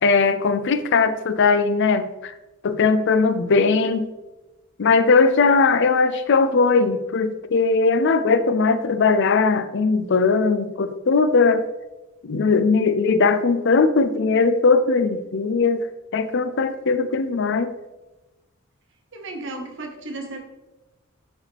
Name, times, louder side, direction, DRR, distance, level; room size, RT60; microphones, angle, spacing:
voice 1, 0.0-2.3 2.6-4.1 4.8-11.6 12.2-15.9 16.1-17.7, left 4 dB, 60° left, 12 dB, 0.5 m, -19 dB
voice 2, 19.1-20.4, right 2 dB, 65° right, 2 dB, 1.4 m, -34 dB
11.0 x 4.9 x 3.4 m, 1.1 s
head